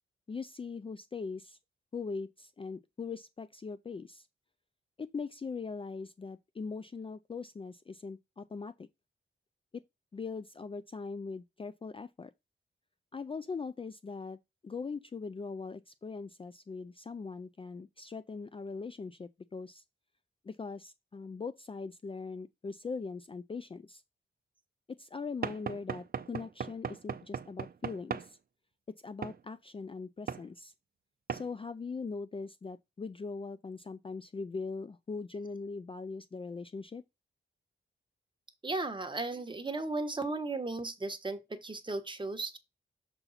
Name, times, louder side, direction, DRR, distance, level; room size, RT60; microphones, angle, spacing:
voice 1, 0.3-1.6 1.9-4.3 5.0-8.9 9.7-9.8 10.1-12.3 13.1-14.4 14.6-19.8 20.4-24.0 24.9-28.4 29.0-30.7 31.3-37.0, left 4 dB, 25° left, 0.4 m, -41 dB
Knock / Wood, 25.4-28.3 29.2-29.4 30.3-30.5 31.3-31.5, right 7 dB, 45° right, 0.6 m, -37 dB
voice 2, 38.6-42.6, right 3 dB, 20° right, 1.3 m, -35 dB
6.9 x 4.0 x 4.1 m
cardioid pair, 90°, 21 cm